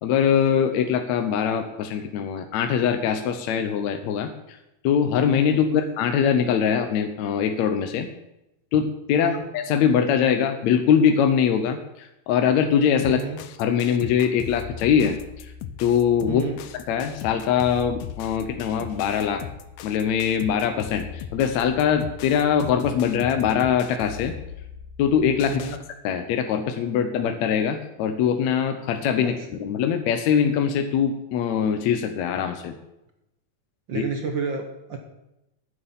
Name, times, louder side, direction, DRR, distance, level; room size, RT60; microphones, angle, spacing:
voice 1, 0.0-4.6 4.8-8.1 8.7-13.2 13.6-15.5 15.8-16.4 16.9-19.4 19.8-24.3 25.0-25.6 26.0-29.3 29.6-32.7 34.0-34.1, left 8 dB, 75° left, 6 dB, 2.0 m, -22 dB
voice 2, 9.1-9.4 13.1-13.4 16.3-16.6 25.5-25.8 29.2-29.5 33.9-35.0, right 4 dB, 55° right, 4 dB, 1.3 m, -30 dB
sound 1, 13.0-25.8, left 9 dB, 90° left, 2.2 m, -38 dB
9.6 x 8.4 x 7.3 m, 0.90 s
omnidirectional pair, 3.5 m